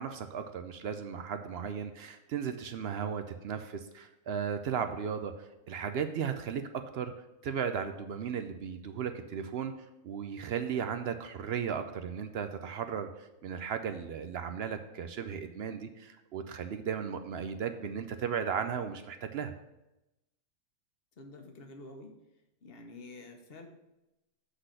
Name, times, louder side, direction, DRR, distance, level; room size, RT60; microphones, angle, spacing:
voice 1, 0.0-6.6 6.9-7.1 7.4-9.7 10.0-19.5, right 7 dB, 70° right, 8 dB, 0.6 m, -36 dB
voice 2, 21.2-22.1 22.6-23.7, left 2 dB, 45° left, 4 dB, 1.1 m, -48 dB
8.1 x 4.0 x 6.4 m, 0.95 s
omnidirectional pair, 1.6 m